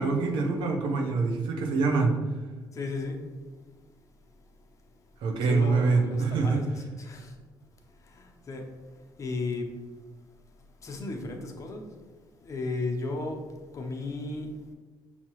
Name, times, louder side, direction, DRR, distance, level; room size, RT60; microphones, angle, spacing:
voice 1, 0.0-2.1 5.2-6.6, right 4 dB, 75° right, 2 dB, 0.7 m, -25 dB
voice 2, 2.7-3.3 5.4-7.4 8.0-9.8 10.8-11.9 12.4-14.6, left 3 dB, 40° left, 1 dB, 0.8 m, -35 dB
5.8 x 2.8 x 3.0 m, 1.3 s
cardioid pair, 95°, 8 cm